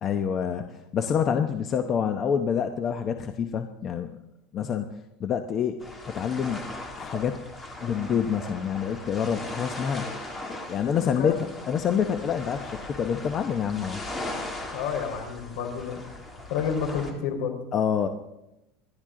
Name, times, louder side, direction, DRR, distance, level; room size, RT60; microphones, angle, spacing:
voice 1, 0.0-4.2 4.5-4.9 5.2-5.8 6.1-6.7 7.0-7.4 7.8-10.0 10.6-11.3 11.7-14.0 17.7-18.1, left 7 dB, 30° left, 7 dB, 0.8 m, -27 dB
sound 1, 5.8-17.1, left 2 dB, 15° left, 2.6 m, -39 dB
voice 2, 11.0-11.4 14.7-16.0 16.5-17.6, left 7 dB, 65° left, 4 dB, 4.1 m, -30 dB
27.0 x 12.0 x 3.8 m, 0.91 s
supercardioid pair, 155°, 0 cm